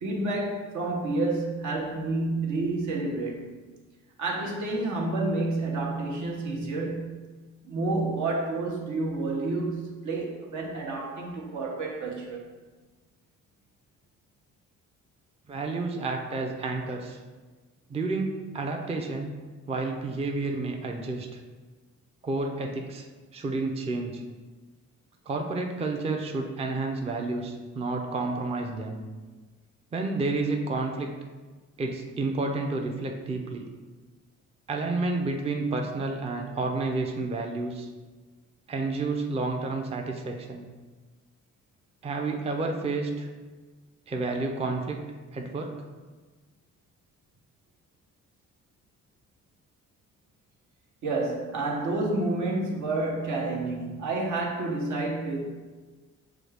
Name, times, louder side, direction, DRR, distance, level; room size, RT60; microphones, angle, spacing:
voice 1, 0.0-3.5 4.2-7.1 7.6-12.4 51.0-55.4, right 2 dB, 75° right, -1 dB, 1.0 m, -29 dB
voice 2, 15.5-17.2 17.9-19.3 19.7-21.4 22.2-23.1 23.3-24.2 25.3-29.0 29.9-31.1 31.8-33.6 34.7-37.9 38.7-40.7 42.0-43.3 44.1-45.8, right 3 dB, 20° right, 2 dB, 0.4 m, -30 dB
6.0 x 2.3 x 3.3 m, 1.3 s
cardioid pair, 90°, 30 cm